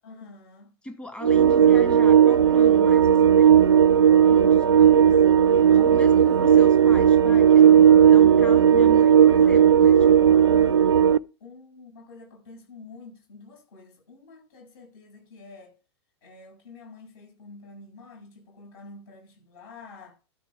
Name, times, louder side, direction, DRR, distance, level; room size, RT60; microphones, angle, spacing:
voice 1, 0.0-0.8 4.9-5.3 5.7-6.3 10.4-10.8 11.4-15.8 16.2-20.2, left 4 dB, 50° left, 7.4 m, -47 dB
voice 2, 0.8-3.6 4.3-5.3 5.7-10.4, left 1 dB, 5° left, 1.7 m, -40 dB
sound 1, 1.2-11.2, right 9 dB, 80° right, 0.4 m, -16 dB
13.0 x 5.5 x 5.9 m
figure-of-eight pair, 95°, 14 cm